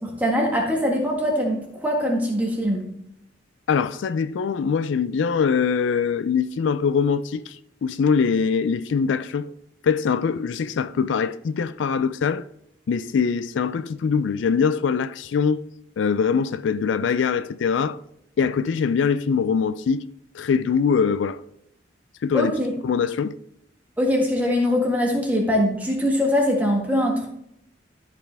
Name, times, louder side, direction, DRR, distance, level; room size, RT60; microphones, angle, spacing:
voice 1, 0.0-2.9 22.3-22.7 24.0-27.3, equal, 10° right, 1.7 m, -22 dB
voice 2, 3.7-7.6 7.8-9.5 9.8-12.4 12.9-15.6 16.0-18.0 18.4-20.0 20.3-21.4 22.2-22.5 22.8-23.3, left 6 dB, 80° left, 0.4 m, -23 dB
13.0 x 5.1 x 3.4 m
head